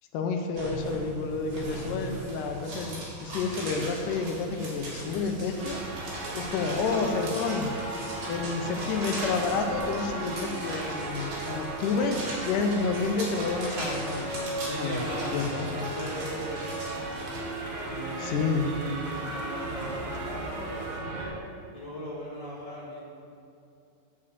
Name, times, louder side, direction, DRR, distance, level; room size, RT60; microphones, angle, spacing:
voice 1, 0.1-5.8 6.4-7.8 8.3-14.3 14.7-15.0 15.3-15.9 18.2-18.7, left 4 dB, 75° left, 4 dB, 2.2 m, -29 dB
sound 1, 0.5-17.4, right 1 dB, 65° right, 3.9 m, -39 dB
sound 2, 3.4-21.0, equal, 25° right, 1.0 m, -52 dB
sound 3, 5.6-21.3, right 2 dB, 85° right, 3.5 m, -36 dB
voice 2, 14.6-17.3 17.8-21.3 21.7-23.0, equal, 35° left, -7 dB, 0.5 m, -38 dB
9.5 x 5.4 x 8.1 m, 2.6 s
omnidirectional pair, 4.2 m